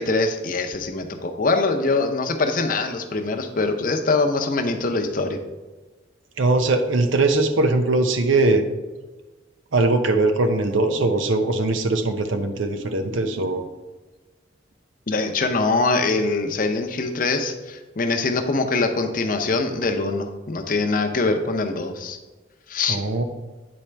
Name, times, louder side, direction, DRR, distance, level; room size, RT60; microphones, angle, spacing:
voice 1, 0.0-5.4 15.1-22.2 22.7-23.0, left 3 dB, 45° left, 5 dB, 0.6 m, -23 dB
voice 2, 6.4-8.6 9.7-13.6 22.9-23.2, right 2 dB, 85° right, 7 dB, 0.6 m, -21 dB
8.7 x 4.3 x 3.3 m, 1.2 s
head